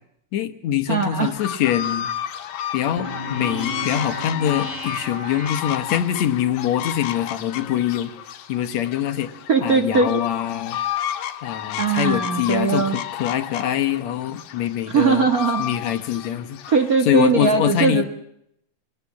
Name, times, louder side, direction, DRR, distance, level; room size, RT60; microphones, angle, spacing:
voice 1, 0.3-2.1 2.7-8.1 8.5-9.3 9.6-10.8 11.4-15.3 15.6-16.6 17.0-18.0, left 10 dB, 65° left, 7 dB, 2.1 m, -24 dB
voice 2, 0.9-1.3 9.5-10.1 11.8-12.9 14.9-15.7 16.7-18.0, right 5 dB, 50° right, 5 dB, 1.0 m, -19 dB
sound 1, 1.4-17.0, left 10 dB, 85° left, 2.8 m, -32 dB
sound 2, 3.0-6.3, left 2 dB, 10° left, 2.4 m, -34 dB
22.0 x 18.0 x 8.5 m, 0.75 s
omnidirectional pair, 3.9 m